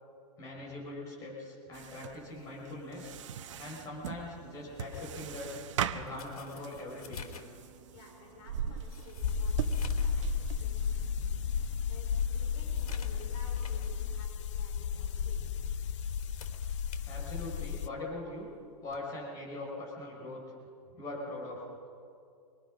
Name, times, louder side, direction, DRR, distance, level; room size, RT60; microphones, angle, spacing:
voice 1, 0.4-3.1 3.6-5.5 5.9-7.3 17.1-18.5 18.8-20.4 21.0-21.6, left 2 dB, 20° left, -4 dB, 5.2 m, -42 dB
sound 1, 1.7-14.2, right 8 dB, 55° right, 1.2 m, -40 dB
sound 2, 4.8-10.2 10.6-10.7 11.2-11.3 11.8-14.0 14.4-14.6 15.8-17.8 18.9-19.1, left 5 dB, 90° left, 3.4 m, -50 dB
voice 2, 7.9-11.3 11.9-15.6, left 3 dB, 35° left, -1 dB, 5.2 m, -54 dB
sound 3, 9.2-17.9, left 7 dB, 55° left, 0.9 m, -33 dB
26.5 x 22.0 x 6.4 m, 2.4 s
hypercardioid pair, 165°, 19 cm